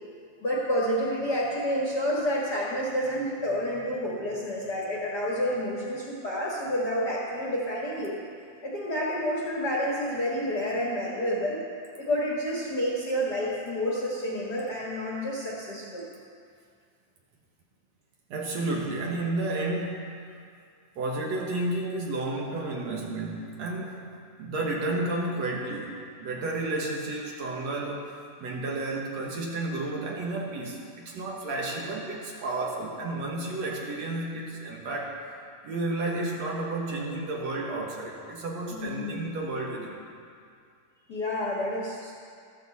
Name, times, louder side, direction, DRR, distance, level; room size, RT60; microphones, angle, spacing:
voice 1, 0.4-8.2 8.6-11.6 12.0-16.0 38.7-39.2 41.1-42.1, equal, 40° left, -5 dB, 1.6 m, -29 dB
voice 2, 18.3-20.2 21.0-24.1 24.4-28.1 28.4-35.2 35.6-40.0, right 2 dB, 65° right, -1 dB, 2.3 m, -32 dB
14.0 x 13.0 x 4.1 m, 2.3 s
omnidirectional pair, 3.6 m